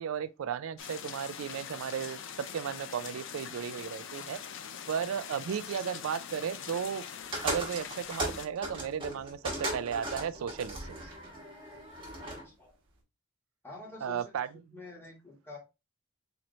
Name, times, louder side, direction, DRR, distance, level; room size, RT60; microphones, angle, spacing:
voice 1, 0.0-4.4 4.9-7.1 7.4-11.1 14.0-14.5, right 8 dB, 65° right, 0.3 m, -35 dB
sound 1, 0.8-8.5, left 8 dB, 55° left, 0.4 m, -43 dB
sound 2, 7.3-12.5, right 1 dB, 20° right, 1.3 m, -37 dB
voice 2, 12.2-12.8 13.6-14.4 14.7-15.6, left 3 dB, 10° left, 1.3 m, -48 dB
3.9 x 3.0 x 3.0 m
head